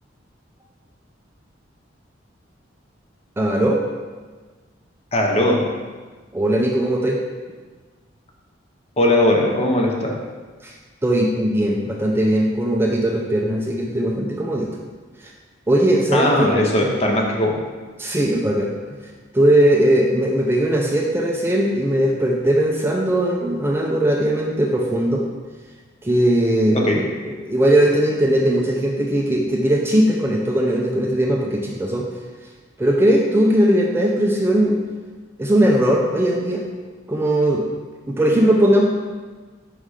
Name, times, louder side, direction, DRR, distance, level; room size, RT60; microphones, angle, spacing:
voice 1, 3.4-3.8 6.3-7.2 10.6-10.7 11.0-14.7 15.2-15.3 15.7-16.5 16.8-16.9 18.0-18.7 19.3-25.3 26.0-32.1 32.8-34.8 35.4-36.6 37.1-37.6 38.1-38.8, right 1 dB, 10° right, -1 dB, 0.4 m, -19 dB
voice 2, 5.1-5.6 9.0-10.1 16.1-17.6 26.7-27.0, left 1 dB, 35° left, 0 dB, 0.8 m, -18 dB
5.4 x 3.7 x 4.8 m, 1.4 s
head